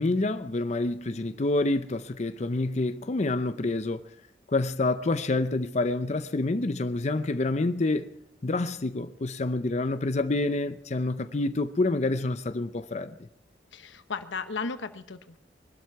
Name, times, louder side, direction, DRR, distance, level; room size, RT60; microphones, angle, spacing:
voice 1, 0.0-4.1 4.5-8.1 8.4-13.2, left 2 dB, 40° left, 0.6 m, -27 dB
voice 2, 13.7-15.4, left 4 dB, 90° left, 1.0 m, -35 dB
21.5 x 12.5 x 4.7 m
head